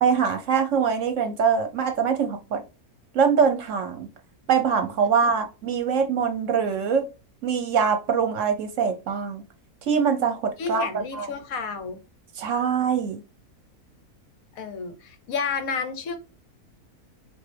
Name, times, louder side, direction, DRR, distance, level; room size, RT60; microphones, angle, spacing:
voice 1, 0.0-2.6 3.1-4.1 4.5-7.1 7.4-9.4 9.9-11.3 12.4-13.2, right 6 dB, 60° right, 1.0 m, -23 dB
voice 2, 10.6-12.0 14.6-16.2, left 5 dB, 70° left, 1.2 m, -31 dB
5.7 x 2.6 x 3.3 m
omnidirectional pair, 1.6 m